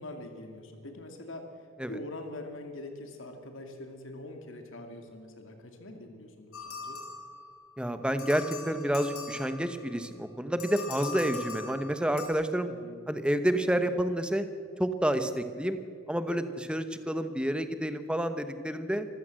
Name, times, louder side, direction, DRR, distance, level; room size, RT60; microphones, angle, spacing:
voice 1, 0.0-7.0 12.7-13.0, left 1 dB, 60° left, 4 dB, 2.4 m, -44 dB
sound 1, 6.5-7.7 8.2-9.9 10.6-12.3, left 4 dB, 85° left, 4.8 m, -41 dB
voice 2, 7.8-12.7 13.1-14.5 14.8-15.8 16.1-19.1, right 1 dB, 5° right, 9 dB, 1.0 m, -29 dB
25.5 x 15.5 x 7.7 m, 2.3 s
head